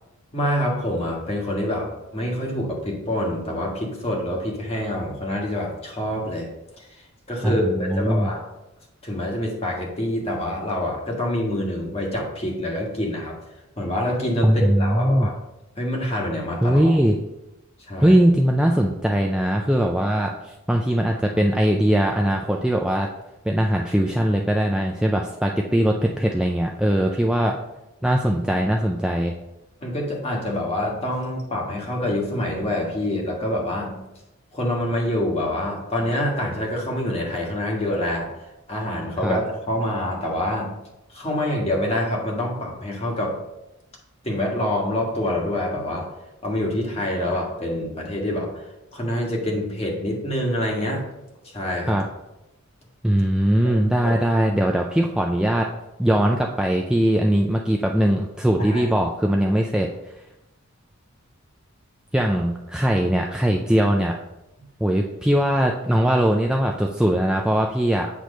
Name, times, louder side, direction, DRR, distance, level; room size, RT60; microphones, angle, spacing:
voice 1, 0.3-6.5 6.8-6.9 7.3-8.4 9.0-13.3 13.8-15.3 15.8-16.9 17.9-18.2 27.3-27.5 29.8-34.0 34.5-38.3 38.7-40.7 41.1-43.4 44.2-46.1 46.4-48.7 48.9-51.0 51.5-52.0 53.6-53.8 54.0-54.1 58.6-58.9, left 1 dB, 30° left, -1 dB, 1.4 m, -26 dB
voice 2, 7.4-8.3 14.4-15.3 16.6-17.2 18.0-23.1 23.4-27.5 28.0-29.3 39.2-39.4 51.9-52.0 53.0-55.7 56.0-59.9 62.1-64.2 64.8-68.1, equal, 5° right, 1 dB, 0.3 m, -20 dB
8.3 x 3.1 x 5.1 m, 0.93 s
head